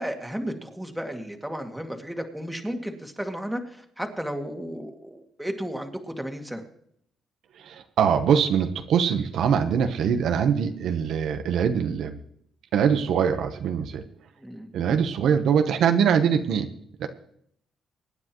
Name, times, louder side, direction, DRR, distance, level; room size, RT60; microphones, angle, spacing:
voice 1, 0.0-6.6 14.4-14.7, equal, 5° right, 3 dB, 2.1 m, -33 dB
voice 2, 7.5-12.2 12.7-14.0 14.7-16.7 17.0-17.1, right 7 dB, 75° right, 7 dB, 1.0 m, -23 dB
23.5 x 9.8 x 3.0 m, 0.68 s
cardioid pair, 90°, 0 cm